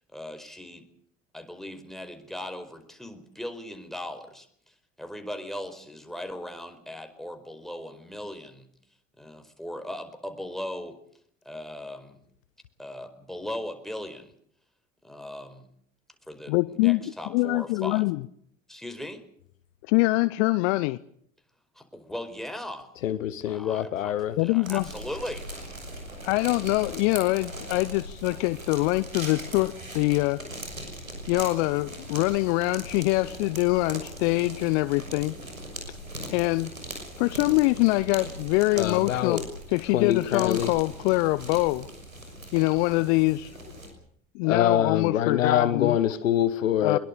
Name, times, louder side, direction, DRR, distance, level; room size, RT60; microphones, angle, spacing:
voice 1, 0.1-0.9 1.3-8.7 9.2-11.0 11.4-12.2 12.8-14.3 15.0-15.7 16.3-18.0 18.7-19.2 21.7-22.9 23.4-25.5, left 1 dB, ahead, 4.8 m, -38 dB
voice 2, 16.5-17.0 17.3-18.2 19.9-21.0 24.4-24.8 26.2-30.4 31.3-35.3 36.3-36.7 37.2-39.4 39.7-41.9 42.5-43.5 44.3-46.0 46.8-47.0, left 22 dB, 60° left, 0.8 m, -24 dB
voice 3, 23.0-24.3 38.8-39.5 39.9-40.7 44.4-47.0, left 10 dB, 75° left, 1.4 m, -25 dB
sound 1, 24.6-43.9, right 1 dB, 90° right, 6.3 m, -40 dB
23.5 x 22.0 x 6.7 m
figure-of-eight pair, 60°, 39 cm